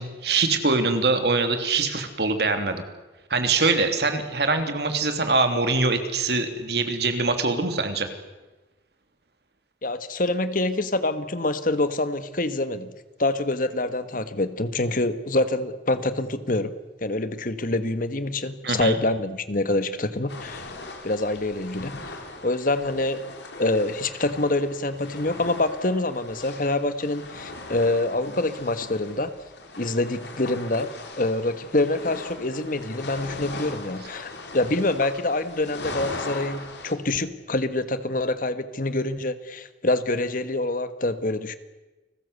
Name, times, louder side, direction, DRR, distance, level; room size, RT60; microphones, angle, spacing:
voice 1, 0.0-2.8 3.3-8.1 18.6-19.0, right 3 dB, 65° right, 7 dB, 3.2 m, -23 dB
voice 2, 9.8-12.9 13.2-16.7 17.0-20.7 21.0-22.0 22.4-29.3 29.8-41.6, left 2 dB, 50° left, 12 dB, 1.6 m, -26 dB
sound 1, 20.3-36.9, left 2 dB, 75° left, 4.2 m, -39 dB
30.0 x 20.0 x 8.3 m, 1.1 s
head